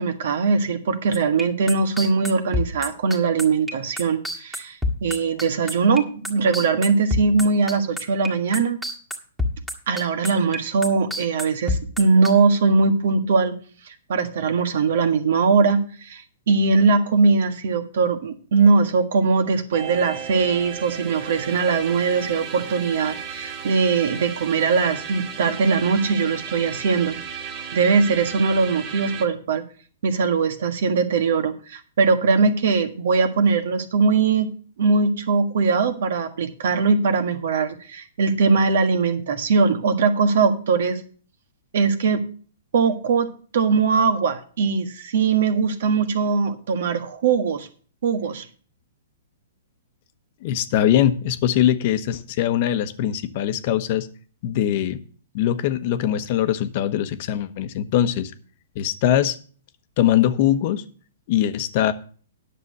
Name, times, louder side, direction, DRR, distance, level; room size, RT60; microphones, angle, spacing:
voice 1, 0.0-8.8 9.9-13.5 14.1-27.2 27.7-29.6 30.0-34.5 34.8-41.0 41.7-42.2 42.7-43.3 43.5-47.7 48.0-48.4, right 4 dB, 65° right, 9 dB, 1.6 m, -21 dB
sound 1, 1.1-8.3 8.5-12.3, left 2 dB, 5° right, 1.8 m, -27 dB
sound 2, 19.7-29.2, right 7 dB, 40° right, 2.0 m, -35 dB
voice 2, 50.4-54.1 54.4-55.0 55.3-58.3 58.7-59.4 60.0-60.8 61.3-61.9, left 11 dB, 50° left, 12 dB, 1.0 m, -21 dB
9.9 x 6.8 x 6.6 m, 0.42 s
hypercardioid pair, 125°, 0 cm